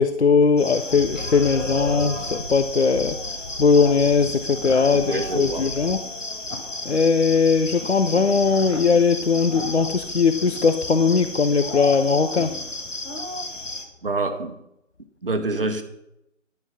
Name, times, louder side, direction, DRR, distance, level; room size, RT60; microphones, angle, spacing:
voice 1, 0.0-3.2 3.6-6.0 6.8-12.5, left 5 dB, 60° left, 9 dB, 0.6 m, -19 dB
sound 1, 0.6-13.8, left 2 dB, 75° left, 1.9 m, -32 dB
sound 2, 0.9-5.9, left 1 dB, 15° right, 0.9 m, -37 dB
voice 2, 4.9-5.6 14.0-14.6 15.2-15.8, right 3 dB, 45° right, 8 dB, 1.1 m, -26 dB
10.5 x 5.8 x 5.5 m, 0.83 s
figure-of-eight pair, 155°, 37 cm